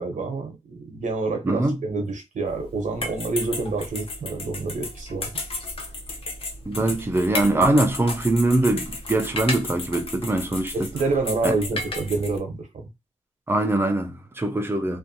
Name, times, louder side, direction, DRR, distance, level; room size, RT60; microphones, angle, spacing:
voice 1, 0.0-5.3 10.7-12.9, right 3 dB, 75° right, 0.7 m, -28 dB
voice 2, 1.4-1.8 6.7-10.9 11.4-11.5 13.5-15.0, right 2 dB, 15° right, 0.4 m, -22 dB
sound 1, 2.4-12.4, left 2 dB, 45° left, 0.5 m, -34 dB
2.6 x 2.3 x 2.5 m
wide cardioid pair, 160°, 13 cm